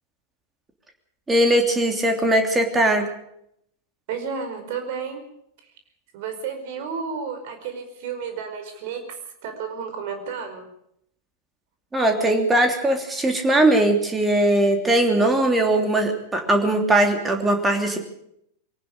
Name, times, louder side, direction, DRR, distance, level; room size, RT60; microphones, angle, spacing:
voice 1, 1.3-3.0 11.9-18.0, right 1 dB, 10° right, 4 dB, 3.1 m, -20 dB
voice 2, 4.1-5.2 6.1-9.2 9.4-10.7, right 6 dB, 50° right, 7 dB, 5.1 m, -32 dB
22.5 x 18.5 x 6.8 m, 0.74 s
figure-of-eight pair, 90°, 0 cm